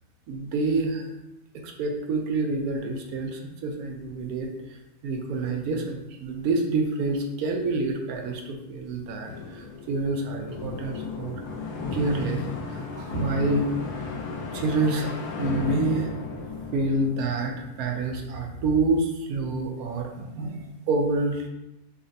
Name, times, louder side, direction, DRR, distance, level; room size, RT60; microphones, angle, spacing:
voice 1, 0.3-1.1 1.5-4.5 5.0-11.4 11.9-13.7 14.5-16.1 16.7-21.5, right 3 dB, 75° right, 2 dB, 1.0 m, -27 dB
sound 1, 9.2-18.1, left 4 dB, 85° left, 1.1 m, -34 dB
4.9 x 2.1 x 2.6 m, 0.89 s
omnidirectional pair, 1.6 m